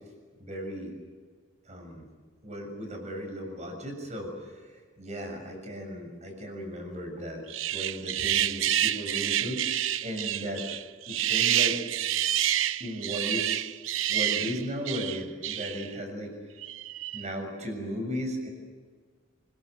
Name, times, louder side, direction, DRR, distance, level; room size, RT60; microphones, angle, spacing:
voice 1, 0.4-0.9 1.7-2.1 2.4-7.4 7.7-10.6 11.1-11.8 12.8-13.6 14.1-16.3 17.1-18.5, equal, 35° right, 4 dB, 6.8 m, -36 dB
sound 1, 7.5-16.0 16.6-17.3, right 11 dB, 80° right, 0.7 m, -28 dB
25.5 x 21.5 x 8.0 m, 1.6 s
head